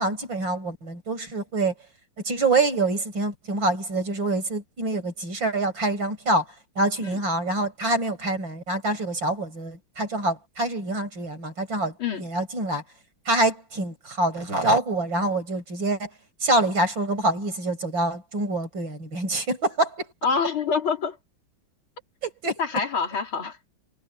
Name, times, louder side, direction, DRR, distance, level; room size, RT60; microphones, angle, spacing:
voice 1, 0.0-1.7 2.2-6.5 6.8-12.8 13.3-16.1 16.4-20.1 22.2-22.6, right 2 dB, 65° right, 6.8 m, -26 dB
voice 2, 20.2-21.2 22.6-23.7, left 5 dB, 80° left, 4.2 m, -26 dB
omnidirectional pair, 2.2 m